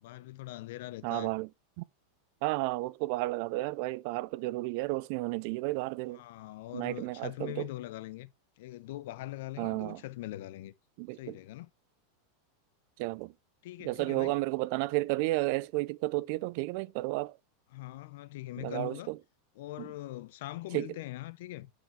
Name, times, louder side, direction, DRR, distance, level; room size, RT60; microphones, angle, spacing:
voice 1, 0.0-1.3 6.1-10.7 11.1-11.7 13.6-14.4 17.7-19.1 19.6-21.7, left 16 dB, 65° left, 0.6 m, -42 dB
voice 2, 1.0-1.5 1.8-1.9 2.4-6.2 6.7-7.7 9.6-10.0 11.0-11.4 13.0-13.3 13.8-17.4 18.6-19.2 19.8-19.9 20.7-20.9, right 21 dB, 55° right, 0.4 m, -32 dB
9.2 x 5.0 x 3.1 m
supercardioid pair, 145°, 0 cm